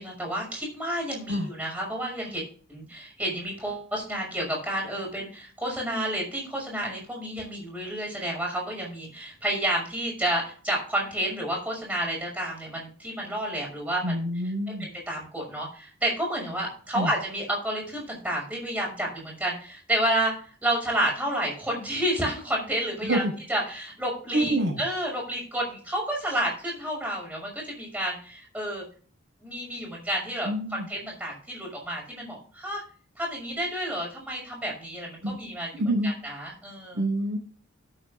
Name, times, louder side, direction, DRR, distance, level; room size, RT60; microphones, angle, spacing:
voice 1, 0.0-2.4 2.7-14.2 14.8-20.3 20.6-23.2 23.5-28.8 29.4-32.8 33.2-35.7 36.0-37.0, right 1 dB, 5° right, -3 dB, 5.9 m, -30 dB
voice 2, 14.0-14.9 16.9-17.1 23.0-23.3 24.3-24.8 30.4-30.9 35.2-35.4 35.8-36.1 36.9-37.4, right 1 dB, 75° right, 0 dB, 4.6 m, -26 dB
17.5 x 8.8 x 2.6 m, 0.42 s
head